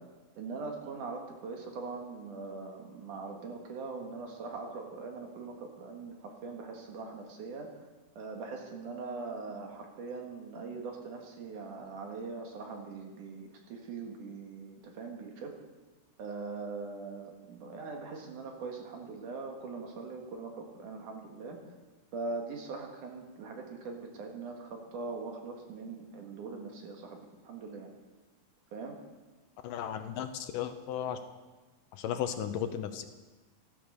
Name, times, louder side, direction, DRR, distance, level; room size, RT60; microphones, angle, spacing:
voice 1, 0.4-7.7 8.2-15.5 16.2-21.6 22.1-27.9 28.7-29.0, right 4 dB, 65° right, 2 dB, 3.2 m, -41 dB
voice 2, 29.6-31.2 31.9-33.1, left 9 dB, 75° left, 9 dB, 2.4 m, -35 dB
14.0 x 14.0 x 6.5 m, 1.2 s
omnidirectional pair, 4.0 m